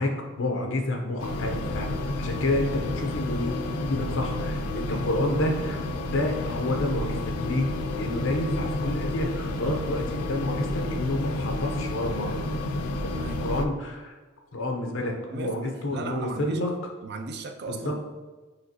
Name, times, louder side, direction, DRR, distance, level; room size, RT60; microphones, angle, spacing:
voice 1, 0.0-1.9 2.2-5.8 6.1-7.7 8.0-12.5 13.4-14.1 14.5-16.7 17.7-17.9, left 1 dB, 60° left, 2 dB, 0.8 m, -29 dB
sound 1, 1.2-13.7, left 2 dB, 85° left, 0.4 m, -30 dB
voice 2, 13.1-13.5 15.3-16.6 17.0-18.0, right 3 dB, 50° right, 6 dB, 0.4 m, -36 dB
6.1 x 3.0 x 2.8 m, 1.3 s
head